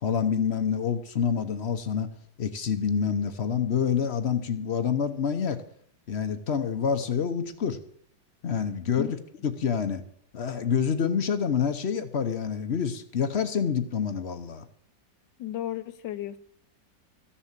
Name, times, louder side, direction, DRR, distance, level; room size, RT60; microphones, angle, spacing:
voice 1, 0.0-2.1 2.4-5.6 6.1-7.8 8.4-9.2 9.4-10.0 10.3-14.7, left 7 dB, 50° left, 10 dB, 0.8 m, -27 dB
voice 2, 15.4-16.4, left 12 dB, 75° left, 10 dB, 1.4 m, -33 dB
14.0 x 7.1 x 7.4 m, 0.67 s
omnidirectional pair, 2.0 m